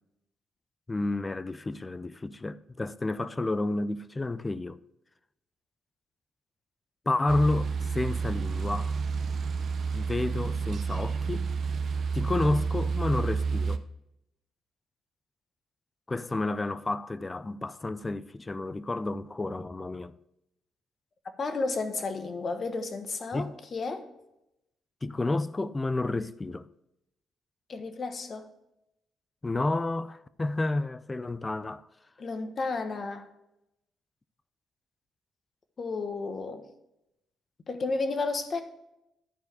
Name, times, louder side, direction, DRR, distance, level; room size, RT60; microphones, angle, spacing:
voice 1, 0.9-4.8 7.1-9.0 9.9-11.5 12.1-13.9 16.1-20.2 23.3-23.5 25.0-26.7 29.4-31.8, left 2 dB, 20° left, 0.4 m, -30 dB
sound 1, 7.3-13.8, right 5 dB, 60° right, 0.6 m, -30 dB
voice 2, 21.4-24.1 27.7-28.5 32.2-33.3 35.8-36.7 37.7-38.6, left 3 dB, 45° left, 1.1 m, -32 dB
12.0 x 4.7 x 4.8 m
cardioid pair, 90°, 0 cm